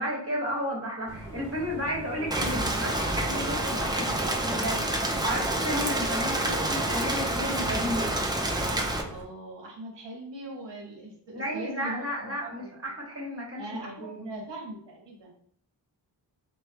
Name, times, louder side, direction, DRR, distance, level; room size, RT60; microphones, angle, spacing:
voice 1, 0.0-8.2 11.3-14.3, equal, 30° right, -3 dB, 1.1 m, -33 dB
sound 1, 1.1-9.2, equal, 5° left, 1.0 m, -41 dB
Rain, 2.3-9.0, right 1 dB, 10° right, 0.4 m, -28 dB
voice 2, 9.1-12.7 13.6-15.3, right 1 dB, 70° right, 0 dB, 1.0 m, -41 dB
3.1 x 2.2 x 2.5 m, 0.65 s
cardioid pair, 45°, 44 cm